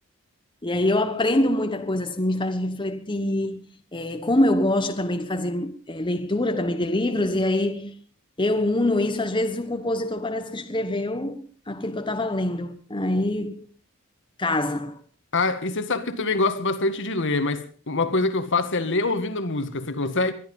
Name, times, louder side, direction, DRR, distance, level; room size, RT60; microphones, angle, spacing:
voice 1, 0.6-3.6 3.9-7.9 8.4-13.7 14.4-15.0, left 1 dB, 20° left, 1.2 m, -25 dB
voice 2, 15.3-20.3, left 3 dB, 60° left, 1.8 m, -25 dB
21.5 x 12.0 x 5.5 m
head